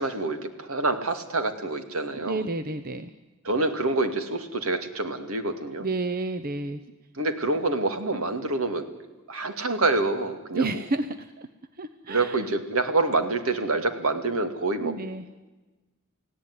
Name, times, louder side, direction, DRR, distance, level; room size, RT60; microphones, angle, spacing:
voice 1, 0.0-2.4 3.4-5.9 7.2-8.9 9.3-10.7 12.1-14.9, right 2 dB, 70° right, 8 dB, 2.4 m, -27 dB
voice 2, 2.2-3.1 5.8-6.8 10.5-11.5 11.8-12.5 14.8-15.3, right 2 dB, 40° right, 10 dB, 0.9 m, -30 dB
29.5 x 17.0 x 9.7 m, 1.2 s
head